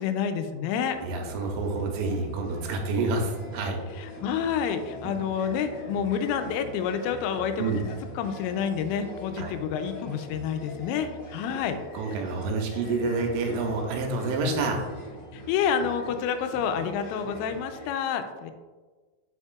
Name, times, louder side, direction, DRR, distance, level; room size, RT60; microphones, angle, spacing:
voice 1, 0.0-1.0 4.0-11.8 15.3-18.5, left 7 dB, 85° left, 8 dB, 3.1 m, -29 dB
sound 1, 0.9-17.9, equal, 65° left, 2.0 m, -43 dB
voice 2, 1.0-3.8 5.0-5.1 7.6-7.8 9.4-9.6 11.9-14.8, right 3 dB, 90° right, 2 dB, 3.3 m, -28 dB
8.2 x 5.1 x 2.3 m, 1.3 s
omnidirectional pair, 5.7 m